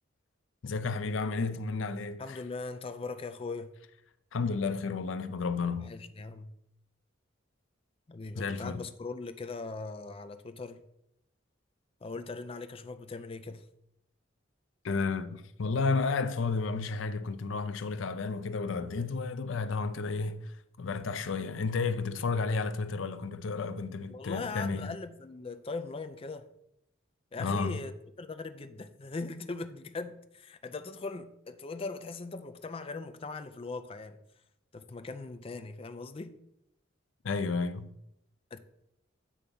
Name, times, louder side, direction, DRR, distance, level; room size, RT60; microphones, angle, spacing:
voice 1, 0.6-2.4 4.3-5.9 8.4-8.8 14.8-25.0 27.4-27.8 37.2-37.9, left 4 dB, 80° left, 0.5 m, -32 dB
voice 2, 2.2-3.7 5.8-6.5 8.1-10.8 12.0-13.6 24.1-26.5 27.3-34.2 34.7-36.3 38.5-38.6, left 3 dB, 30° left, 0.4 m, -40 dB
8.5 x 3.5 x 5.4 m
head